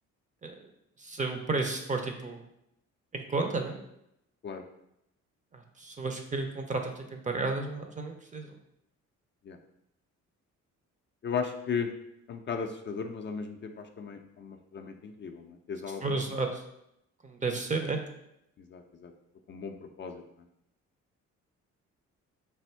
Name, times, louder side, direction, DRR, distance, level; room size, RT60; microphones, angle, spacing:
voice 1, 1.0-2.4 3.1-3.8 5.5-8.5 16.0-16.6 17.2-18.0, right 3 dB, 25° right, 4 dB, 0.5 m, -32 dB
voice 2, 11.2-11.9 12.3-16.2 18.7-19.1 19.5-20.2, left 6 dB, 40° left, 4 dB, 0.4 m, -36 dB
3.4 x 2.6 x 4.3 m, 0.81 s
cardioid pair, 90°, 30 cm